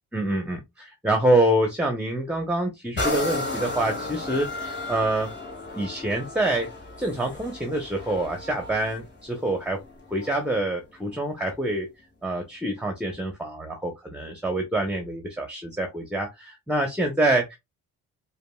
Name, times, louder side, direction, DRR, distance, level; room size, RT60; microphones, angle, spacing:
voice 1, 0.1-5.3 5.7-6.7 7.0-9.8 10.1-11.9 12.2-17.5, right 1 dB, 5° right, 0.9 m, -26 dB
sound 1, 3.0-10.6 11.2-11.3, left 1 dB, 40° left, 1.6 m, -34 dB
5.1 x 2.3 x 2.3 m
cardioid pair, 80°, 30 cm